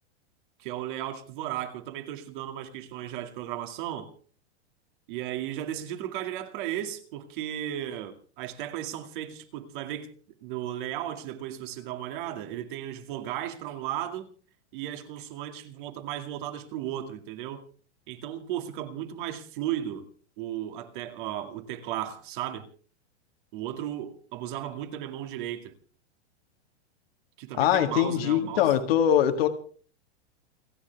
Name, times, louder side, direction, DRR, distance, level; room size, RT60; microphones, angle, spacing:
voice 1, 0.6-4.1 5.1-10.2 10.4-14.3 14.7-17.6 18.1-20.1 20.4-22.7 23.5-25.7 27.4-28.7, right 12 dB, 45° right, 2.3 m, -35 dB
voice 2, 27.6-29.5, left 10 dB, 60° left, 1.9 m, -22 dB
29.0 x 10.0 x 3.5 m
supercardioid pair, 160°, 34 cm